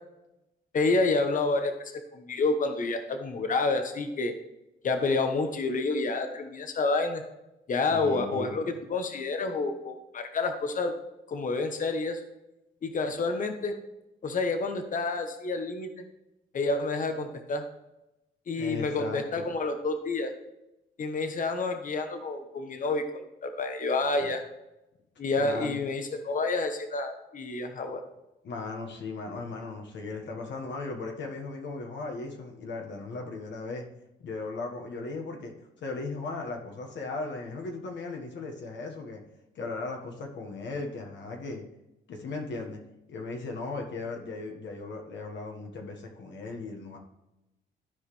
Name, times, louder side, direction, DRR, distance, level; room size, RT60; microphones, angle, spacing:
voice 1, 0.7-1.7 2.1-4.3 4.8-7.2 7.7-8.6 8.9-10.9 11.3-12.2 12.8-13.7 14.2-16.0 16.5-17.6 18.5-20.3 21.0-24.4 25.2-28.0, left 3 dB, 40° left, 7 dB, 1.0 m, -29 dB
voice 2, 7.9-8.7 18.6-19.4 24.2-24.3 25.4-25.8 28.4-33.9 34.2-39.2 39.5-41.6 42.1-42.8 43.1-47.0, left 3 dB, 65° left, 2 dB, 1.5 m, -37 dB
13.5 x 4.9 x 3.3 m, 0.94 s
cardioid pair, 90°, 20 cm